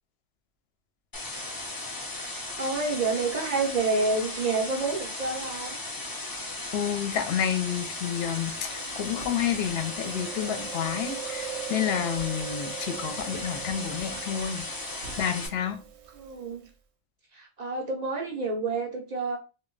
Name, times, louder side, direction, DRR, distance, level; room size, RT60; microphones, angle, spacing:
sound 1, 1.1-15.5, left 2 dB, 35° left, 0.3 m, -36 dB
voice 1, 2.6-5.8 16.1-16.6 17.3-19.4, right 3 dB, 50° right, 0.6 m, -28 dB
voice 2, 6.7-14.6 15.2-15.8, left 9 dB, 70° left, 0.8 m, -30 dB
Chewing mastication, 7.7-16.7, right 9 dB, 80° right, 0.8 m, -42 dB
2.1 x 2.1 x 3.7 m
omnidirectional pair, 1.1 m